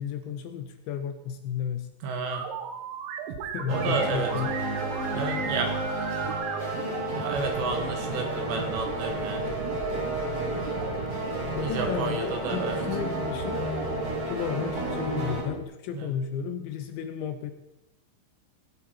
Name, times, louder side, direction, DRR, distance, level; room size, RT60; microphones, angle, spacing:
voice 1, 0.0-1.9 3.5-4.5 11.5-13.6 14.3-17.5, left 8 dB, 80° left, 8 dB, 2.8 m, -33 dB
voice 2, 2.0-2.5 3.7-4.3 5.1-6.1 7.1-9.5 11.6-12.8 15.9-16.1, right 4 dB, 70° right, 5 dB, 3.4 m, -31 dB
sound 1, 2.3-15.6, right 6 dB, 85° right, 3.9 m, -37 dB
sound 2, 3.7-15.4, right 1 dB, 35° right, 3.8 m, -31 dB
18.0 x 11.0 x 4.4 m, 0.93 s
omnidirectional pair, 5.8 m